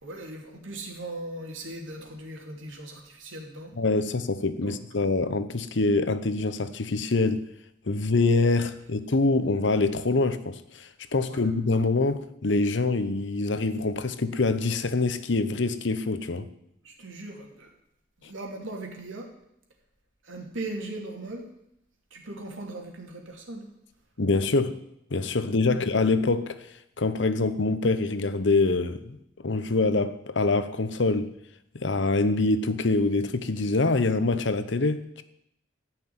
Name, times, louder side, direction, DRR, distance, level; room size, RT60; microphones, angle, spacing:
voice 1, 0.0-3.7 4.6-4.8 11.2-11.5 16.8-17.7 18.2-19.3 20.2-21.5 22.1-23.7, right 2 dB, 85° right, 2.8 m, -39 dB
voice 2, 3.8-7.4 7.9-16.5 24.2-24.8 25.1-26.6 27.0-29.2 29.4-31.3 31.7-35.2, left 3 dB, 70° left, 0.9 m, -25 dB
13.5 x 5.9 x 9.5 m
head